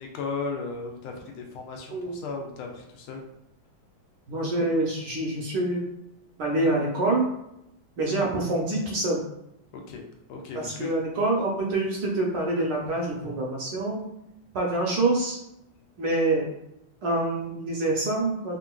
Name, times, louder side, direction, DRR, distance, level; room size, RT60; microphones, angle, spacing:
voice 1, 0.0-3.2 9.7-10.0 10.3-10.9, left 4 dB, 90° left, 2 dB, 1.5 m, -36 dB
voice 2, 4.3-5.9 6.4-7.3 8.0-9.2 10.5-14.1 14.5-15.4 16.0-16.5 17.0-18.6, right 2 dB, 70° right, -2 dB, 1.1 m, -26 dB
3.6 x 2.5 x 2.2 m, 0.83 s
omnidirectional pair, 2.3 m